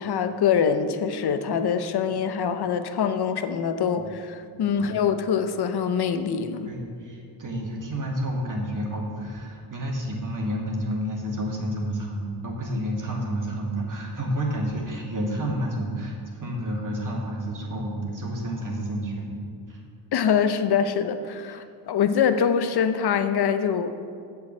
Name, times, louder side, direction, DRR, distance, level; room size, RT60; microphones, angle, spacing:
voice 1, 0.0-6.7 20.1-24.0, left 7 dB, 50° left, 10 dB, 0.8 m, -24 dB
voice 2, 6.6-19.4 19.7-19.8, equal, 40° right, -2 dB, 2.5 m, -30 dB
7.6 x 7.2 x 7.9 m, 2.4 s
cardioid pair, 80°, 50 cm